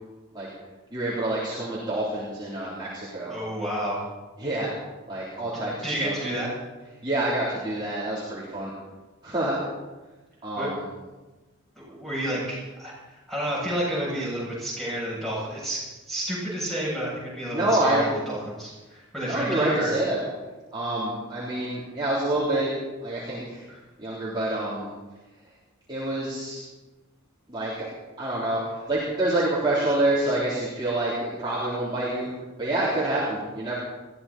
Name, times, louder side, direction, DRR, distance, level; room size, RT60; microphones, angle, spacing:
voice 1, 0.9-3.3 4.4-4.7 5.1-6.1 7.0-8.7 9.2-9.6 10.4-10.8 17.5-18.0 19.3-20.2 20.7-22.7 23.0-23.6 24.0-24.9 25.9-26.6 27.5-27.9 28.2-32.3 32.6-33.7, right 1 dB, 20° right, -8 dB, 3.6 m, -27 dB
voice 2, 3.2-4.0 5.5-6.5 10.6-10.7 11.8-12.9 13.3-15.8 16.1-19.9 23.7-23.8, equal, ahead, -7 dB, 7.8 m, -30 dB
21.0 x 15.5 x 4.3 m, 1.2 s
head